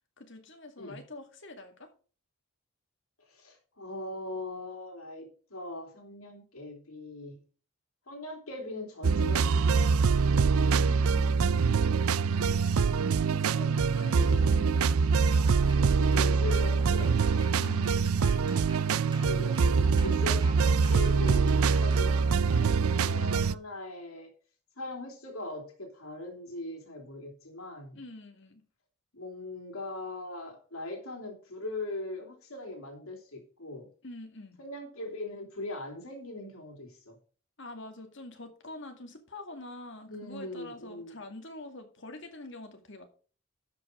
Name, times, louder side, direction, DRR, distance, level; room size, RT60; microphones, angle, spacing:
voice 1, 0.2-1.9 10.6-11.6 13.1-15.2 17.5-18.5 27.9-28.6 34.0-34.6 37.6-43.0, left 2 dB, 60° left, 2.2 m, -46 dB
voice 2, 3.3-7.4 8.1-10.1 12.4-12.9 14.2-14.6 16.0-17.5 19.2-24.3 24.8-28.0 29.1-33.9 34.6-37.2 40.1-41.1, left 2 dB, 85° left, 3.1 m, -40 dB
sound 1, 9.0-23.5, right 5 dB, 90° right, 0.5 m, -24 dB
sound 2, 15.3-22.1, right 3 dB, 20° right, 1.8 m, -48 dB
12.0 x 5.5 x 5.0 m
head